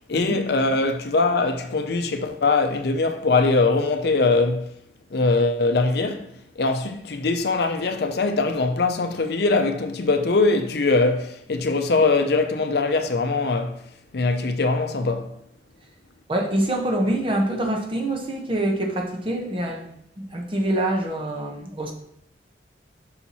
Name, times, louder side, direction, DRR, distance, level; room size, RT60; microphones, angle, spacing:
voice 1, 0.1-4.7 5.1-13.8 14.1-15.3, left 3 dB, 60° left, 0.6 m, -22 dB
voice 2, 16.3-21.9, right 1 dB, 30° right, 0.9 m, -25 dB
5.8 x 4.4 x 4.1 m
head